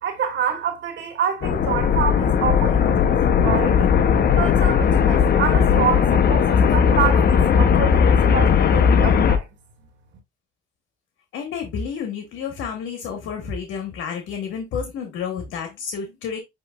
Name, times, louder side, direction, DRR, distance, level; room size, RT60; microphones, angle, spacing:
voice 1, 0.0-3.9 4.3-9.4, right 7 dB, 70° right, 1.7 m, -27 dB
sound 1, 1.4-9.4, left 7 dB, 50° left, 0.7 m, -17 dB
voice 2, 11.3-16.4, left 6 dB, 85° left, 1.1 m, -30 dB
7.7 x 2.9 x 2.3 m
cardioid pair, 90°, 20 cm